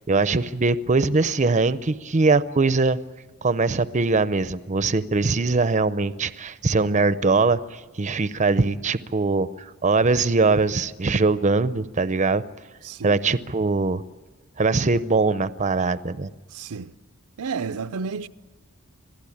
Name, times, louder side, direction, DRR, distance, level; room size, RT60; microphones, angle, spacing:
voice 1, 0.0-3.0 3.4-12.4 13.0-14.0 14.6-16.3, right 3 dB, 35° right, 0.6 m, -22 dB
voice 2, 12.8-13.2 16.5-16.9 17.4-18.3, right 5 dB, 85° right, 0.6 m, -31 dB
26.0 x 17.0 x 8.6 m
head